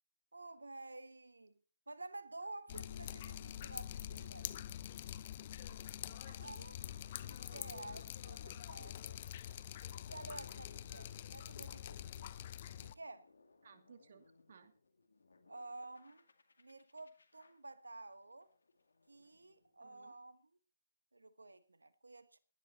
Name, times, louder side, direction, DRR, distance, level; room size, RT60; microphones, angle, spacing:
voice 1, 0.3-1.5 1.9-4.5 6.4-6.8 7.3-9.2 10.1-12.4 12.8-13.3 15.5-16.2 16.6-18.5 19.1-20.5 21.1-22.4, right 2 dB, 90° right, 1.2 m, -51 dB
Drip, 2.7-12.9, left 11 dB, 40° left, 0.9 m, -46 dB
voice 2, 6.3-6.7 11.1-11.2 13.6-14.7 19.8-20.2, right 6 dB, 55° right, 2.5 m, -61 dB
sound 1, 6.8-20.3, left 3 dB, 75° left, 2.2 m, -67 dB
17.0 x 11.5 x 4.2 m
figure-of-eight pair, 145°, 0 cm